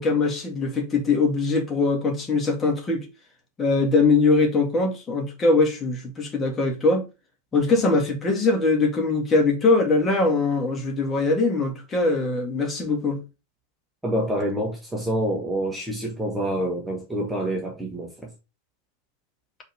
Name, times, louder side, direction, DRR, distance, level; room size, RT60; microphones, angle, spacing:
voice 1, 0.0-3.1 3.6-7.0 7.5-13.2, left 3 dB, 20° left, 2.2 m, -22 dB
voice 2, 14.0-18.3, right 1 dB, 5° right, 1.5 m, -27 dB
5.6 x 4.3 x 5.0 m
figure-of-eight pair, 90°, 0 cm